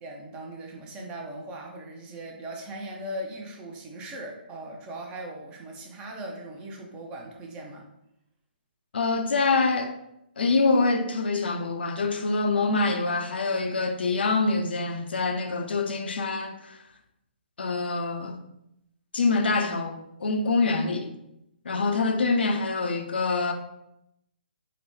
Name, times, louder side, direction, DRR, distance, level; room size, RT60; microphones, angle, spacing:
voice 1, 0.0-7.9, right 1 dB, 20° right, 0.5 m, -39 dB
voice 2, 8.9-9.9 10.4-16.8 17.6-18.4 19.1-21.1 21.6-23.5, left 3 dB, 75° left, 0.4 m, -25 dB
3.8 x 2.1 x 3.0 m
hypercardioid pair, 140°, 6 cm